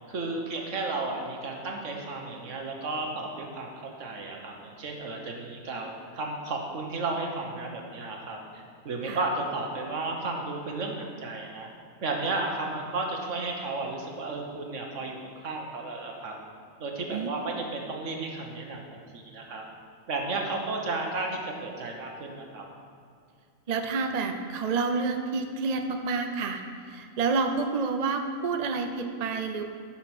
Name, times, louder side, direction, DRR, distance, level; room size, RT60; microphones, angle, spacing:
voice 1, 0.1-11.7 12.0-16.3 16.8-19.6 20.1-22.6, right 3 dB, 65° right, 1 dB, 1.5 m, -33 dB
voice 2, 17.1-17.5 23.7-26.6 26.9-29.6, right 4 dB, 45° right, 6 dB, 0.5 m, -29 dB
9.9 x 6.0 x 6.0 m, 2.3 s
omnidirectional pair, 1.4 m